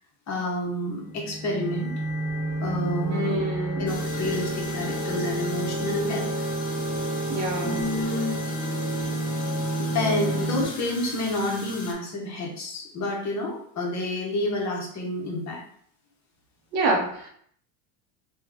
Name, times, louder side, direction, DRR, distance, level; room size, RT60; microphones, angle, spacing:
voice 1, 0.3-1.9 2.6-3.4 3.8-6.2 7.6-8.4 9.8-15.6, left 1 dB, 35° left, -1 dB, 1.0 m, -29 dB
sound 1, 1.1-10.6, right 2 dB, 5° right, 1.3 m, -29 dB
voice 2, 3.1-3.9 7.3-7.9 16.7-17.3, right 2 dB, 80° right, 2 dB, 1.0 m, -27 dB
sound 2, 3.9-11.9, left 6 dB, 20° left, 0.5 m, -38 dB
2.9 x 2.3 x 3.6 m, 0.64 s
supercardioid pair, 125°, 49 cm